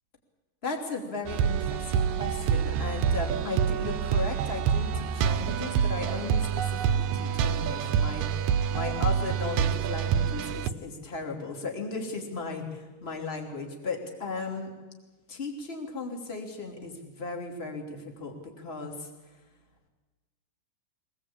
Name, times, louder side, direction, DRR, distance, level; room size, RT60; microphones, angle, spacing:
voice 1, 0.6-14.7 15.3-19.1, left 3 dB, 20° left, 2 dB, 2.8 m, -36 dB
sound 1, 1.3-10.7, right 8 dB, 70° right, 2.0 m, -27 dB
23.5 x 19.0 x 8.7 m, 1.2 s
omnidirectional pair, 3.8 m